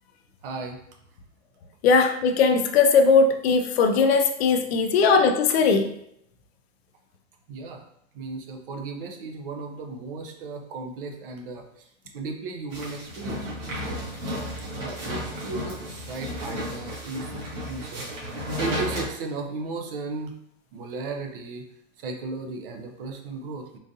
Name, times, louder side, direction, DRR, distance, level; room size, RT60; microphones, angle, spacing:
voice 1, 0.4-0.8 7.5-7.8 8.1-11.6 12.1-14.0 14.7-18.1 18.6-20.3 20.7-21.6 22.0-23.8, right 3 dB, 45° right, 4 dB, 0.5 m, -35 dB
voice 2, 1.8-5.9, left 4 dB, 50° left, 6 dB, 0.5 m, -19 dB
sound 1, 12.7-19.0, equal, 70° right, 1.4 m, -33 dB
3.8 x 2.4 x 2.6 m, 0.75 s
supercardioid pair, 155°, 40 cm